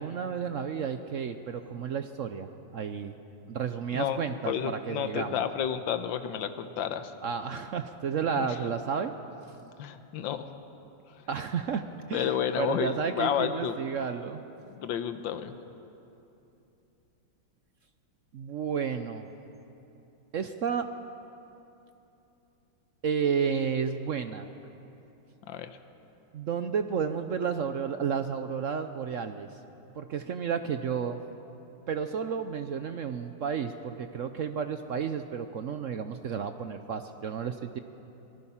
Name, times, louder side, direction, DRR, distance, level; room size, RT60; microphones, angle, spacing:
voice 1, 0.0-3.2 3.5-5.4 7.2-9.1 11.3-14.4 18.3-19.3 20.3-20.9 23.0-24.5 26.3-29.6 29.9-31.2 31.9-37.8, right 6 dB, 70° right, 8 dB, 0.7 m, -32 dB
voice 2, 4.4-7.1 8.4-8.5 9.8-10.4 12.1-13.8 14.7-15.6 25.5-25.8, left 9 dB, 75° left, 9 dB, 1.6 m, -31 dB
25.0 x 18.5 x 5.7 m, 2.9 s
omnidirectional pair, 2.1 m